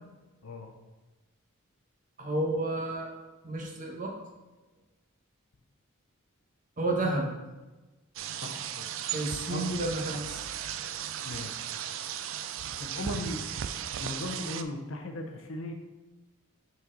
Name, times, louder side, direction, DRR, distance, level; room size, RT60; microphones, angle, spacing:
voice 1, 0.4-0.7 8.3-8.9 9.5-9.7 11.3-11.7 12.8-13.4 14.0-15.7, left 1 dB, 65° left, 5 dB, 0.7 m, -37 dB
voice 2, 2.2-3.1 3.4-4.1 6.8-7.3 9.0-10.4, right 2 dB, 35° right, -1 dB, 1.1 m, -31 dB
sound 1, 8.2-14.6, right 9 dB, 65° right, 0.4 m, -36 dB
6.0 x 4.4 x 3.9 m, 1.1 s
head